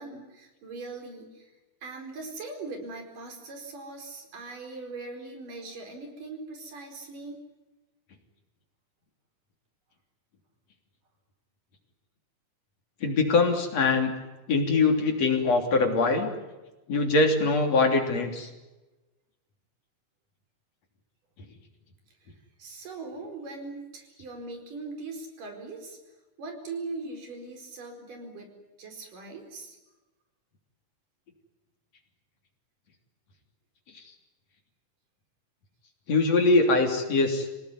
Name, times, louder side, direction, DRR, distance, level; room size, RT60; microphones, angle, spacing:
voice 1, 0.0-1.5 1.8-7.4 22.2-22.3 22.6-26.0 26.4-29.8, right 3 dB, 80° right, 4 dB, 6.1 m, -40 dB
voice 2, 13.0-14.1 14.5-16.3 16.9-18.5 33.9-34.0 36.1-37.5, left 3 dB, 55° left, 4 dB, 4.3 m, -23 dB
27.0 x 18.0 x 9.7 m, 1.1 s
omnidirectional pair, 3.7 m